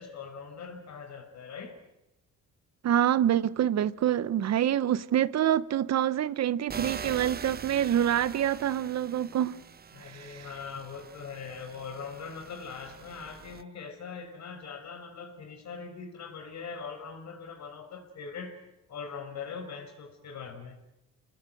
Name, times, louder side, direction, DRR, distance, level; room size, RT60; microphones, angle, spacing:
voice 1, 0.0-1.8 9.9-18.6 18.9-20.8, left 5 dB, 65° left, 5.4 m, -41 dB
voice 2, 2.8-9.6 10.1-10.4, right 10 dB, 60° right, 0.9 m, -26 dB
sound 1, 6.7-13.6, right 6 dB, 30° right, 0.8 m, -43 dB
28.0 x 19.5 x 7.8 m
cardioid pair, 90°, 30 cm